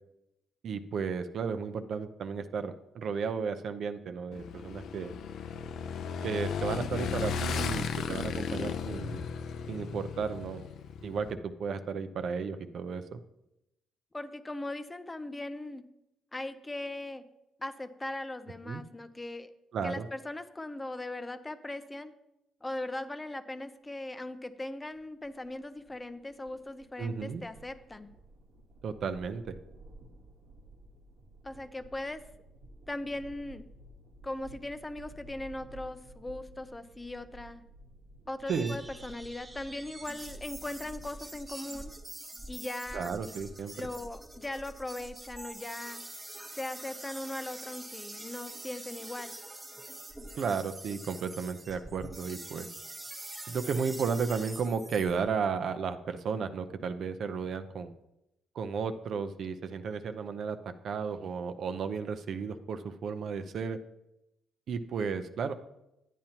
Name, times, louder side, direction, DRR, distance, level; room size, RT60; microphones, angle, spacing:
voice 1, 0.6-5.1 6.2-9.3 9.7-10.6 11.0-13.2 18.7-18.8 19.7-20.1 27.0-27.4 28.8-29.5 38.5-38.8 42.9-43.9 50.4-52.7 53.5-57.9 58.5-60.6 60.8-63.8 64.7-65.5, right 5 dB, 65° right, 9 dB, 0.6 m, -33 dB
Motorcycle / Engine, 4.3-11.3, left 6 dB, 75° left, 0.5 m, -35 dB
voice 2, 8.5-8.8 14.1-15.8 16.3-17.3 17.6-19.5 19.8-22.1 22.6-28.1 31.4-32.2 32.9-33.6 34.2-37.6 38.3-41.9 42.5-43.1 43.8-46.0 46.5-49.3, left 2 dB, 15° left, 11 dB, 0.5 m, -39 dB
sound 1, 24.9-41.3, right 1 dB, 80° right, 1.2 m, -53 dB
sound 2, 38.5-55.3, right 2 dB, 20° right, 1.5 m, -45 dB
10.0 x 9.0 x 2.9 m, 0.89 s
cardioid pair, 90°, 0 cm